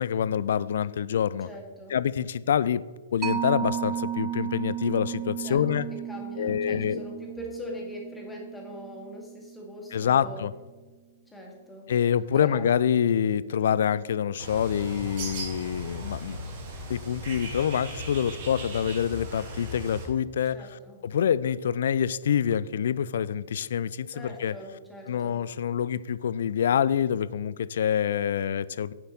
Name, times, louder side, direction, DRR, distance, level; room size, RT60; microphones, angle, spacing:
voice 1, 0.0-1.5 1.9-2.8 3.1-5.9 6.4-7.1 9.9-10.5 11.9-16.4 16.9-20.6 21.0-24.5 25.1-28.9, left 8 dB, 60° left, 18 dB, 0.3 m, -26 dB
voice 2, 1.4-2.0 5.4-10.5 11.3-11.9 12.3-12.7 20.5-21.0 24.1-25.4, left 1 dB, 5° left, -1 dB, 2.0 m, -42 dB
Mallet percussion, 3.2-10.3, right 9 dB, 20° right, 0.6 m, -34 dB
Bird, 14.4-20.0, equal, 45° right, 2.6 m, -37 dB
9.0 x 7.4 x 4.1 m, 1.3 s
figure-of-eight pair, 110°, 0 cm